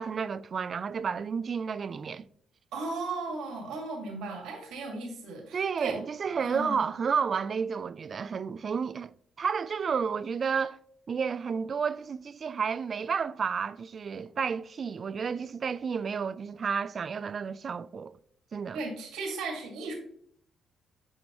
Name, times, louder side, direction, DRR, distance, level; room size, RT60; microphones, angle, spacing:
voice 1, 0.0-2.2 5.5-10.8 11.1-18.2 18.5-18.8, right 6 dB, 45° right, 0.3 m, -31 dB
voice 2, 2.7-6.0 6.4-6.8 18.7-19.9, right 3 dB, 85° right, 2.0 m, -36 dB
9.5 x 4.9 x 3.0 m
cardioid pair, 90°, 0 cm